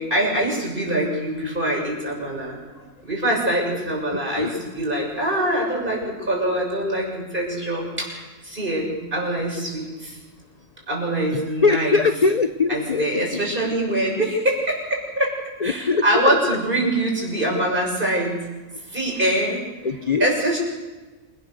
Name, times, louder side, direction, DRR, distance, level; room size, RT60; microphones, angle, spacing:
voice 1, 0.0-2.6 3.0-10.2 10.9-12.0 12.7-15.4 15.6-18.4 18.9-19.7 20.2-20.6, right 1 dB, 30° right, -1 dB, 7.2 m, -24 dB
voice 2, 4.1-4.5 11.3-13.2 15.6-16.3 19.8-20.3, left 4 dB, 40° left, 9 dB, 0.6 m, -22 dB
28.0 x 18.5 x 6.6 m, 1.2 s
omnidirectional pair, 1.6 m